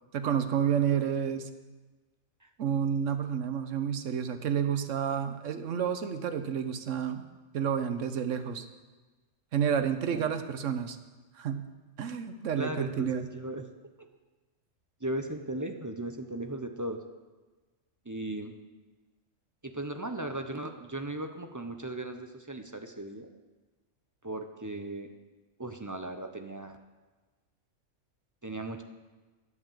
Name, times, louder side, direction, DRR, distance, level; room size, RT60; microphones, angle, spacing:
voice 1, 0.1-1.5 2.6-7.2 7.5-8.7 9.5-11.0 11.4-11.7 12.0-13.3, right 8 dB, 70° right, 10 dB, 1.1 m, -30 dB
voice 2, 12.6-13.7 14.0-14.1 15.0-17.0 18.1-18.5 19.6-23.3 24.2-25.1 25.6-26.8 28.4-28.8, right 1 dB, 20° right, 6 dB, 0.5 m, -37 dB
11.0 x 8.1 x 7.4 m, 1.3 s
omnidirectional pair, 1.3 m